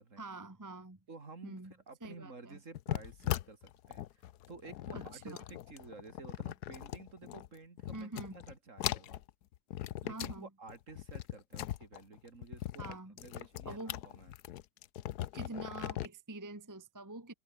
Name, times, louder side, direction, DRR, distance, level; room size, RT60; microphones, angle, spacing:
voice 1, 0.2-1.0 1.4-1.7 2.0-2.6 4.9-5.4 7.9-8.4 10.1-10.5 12.8-13.2 13.7-14.0 15.3-17.3, right 2 dB, 10° right, 1.3 m, -45 dB
voice 2, 1.1-1.6 1.9-9.2 10.0-14.3, right 3 dB, 45° right, 2.9 m, -52 dB
sound 1, 2.7-7.5 7.8-8.5 8.8-10.4 10.7-16.1, left 13 dB, 65° left, 1.2 m, -40 dB
omnidirectional pair, 1.9 m